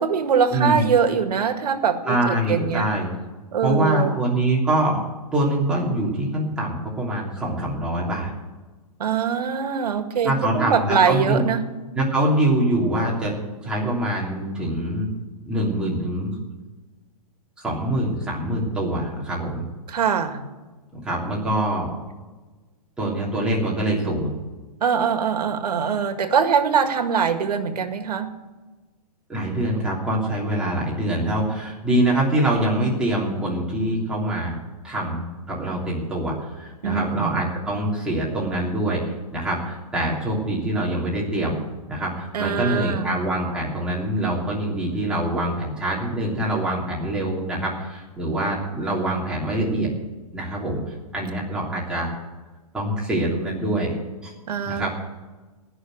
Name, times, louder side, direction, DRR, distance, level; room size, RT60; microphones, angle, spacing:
voice 1, 0.0-2.9 3.5-4.2 9.0-11.6 19.9-20.4 24.8-28.4 36.8-37.4 42.3-43.2 54.5-54.9, right 6 dB, 75° right, 7 dB, 1.9 m, -23 dB
voice 2, 0.5-0.8 2.0-3.1 3.6-5.0 5.3-8.3 10.2-11.4 11.9-13.3 13.6-15.1 15.5-16.3 17.6-19.6 21.0-21.9 23.0-24.3 29.3-34.6 34.8-39.0 39.3-41.6 41.9-49.9 50.3-50.8 51.1-52.1 52.7-53.9 54.2-54.3 54.7-54.9, right 1 dB, 5° right, -5 dB, 3.2 m, -24 dB
19.0 x 6.4 x 7.7 m, 1.2 s
hypercardioid pair, 160°, 20 cm